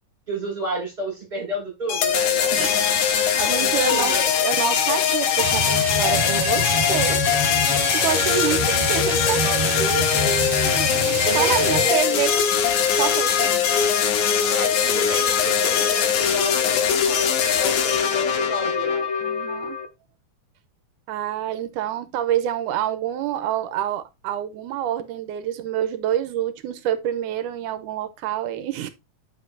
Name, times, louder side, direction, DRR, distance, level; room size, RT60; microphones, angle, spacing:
voice 1, 0.3-2.8 3.3-4.2 11.2-12.2 14.5-19.1, equal, 10° right, 4.9 m, -30 dB
sound 1, 1.9-19.9, left 8 dB, 90° left, 2.6 m, -21 dB
voice 2, 3.3-7.2 7.7-12.3 12.9-13.6 19.2-19.8 21.1-28.9, right 11 dB, 85° right, 2.1 m, -27 dB
sound 2, 5.4-11.9, right 2 dB, 40° right, 1.7 m, -28 dB
9.7 x 5.8 x 2.6 m
omnidirectional pair, 3.7 m